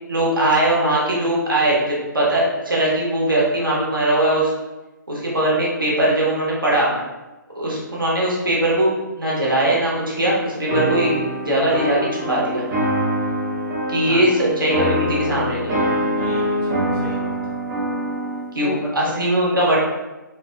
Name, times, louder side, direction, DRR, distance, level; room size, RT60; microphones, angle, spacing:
voice 1, 0.1-4.5 5.1-6.9 7.5-12.7 13.9-15.9 18.5-19.8, right 1 dB, 85° right, -6 dB, 1.0 m, -20 dB
sound 1, 10.7-18.5, equal, 25° right, 0.5 m, -24 dB
voice 2, 16.0-17.3 18.6-19.1, left 1 dB, 15° left, -8 dB, 0.8 m, -34 dB
3.0 x 2.1 x 2.2 m, 1.1 s
figure-of-eight pair, 135°, 11 cm